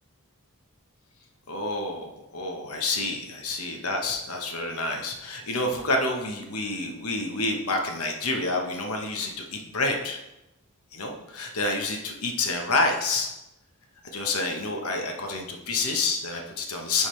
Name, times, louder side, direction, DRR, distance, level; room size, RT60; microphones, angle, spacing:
voice 1, 1.5-10.2 10.9-13.3 14.1-17.1, left 2 dB, 80° left, 2 dB, 1.0 m, -28 dB
9.9 x 3.6 x 3.2 m, 0.94 s
head